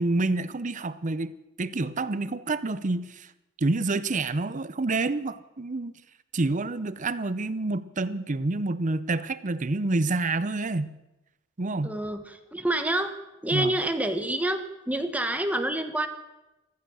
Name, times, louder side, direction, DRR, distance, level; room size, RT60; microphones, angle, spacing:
voice 1, 0.0-3.3 3.6-5.9 6.3-10.9 11.6-11.9 13.5-13.7, right 2 dB, 40° right, 15 dB, 0.7 m, -28 dB
voice 2, 11.8-13.1 13.4-16.1, right 1 dB, 10° right, 7 dB, 1.3 m, -27 dB
15.0 x 14.5 x 6.3 m, 0.97 s
head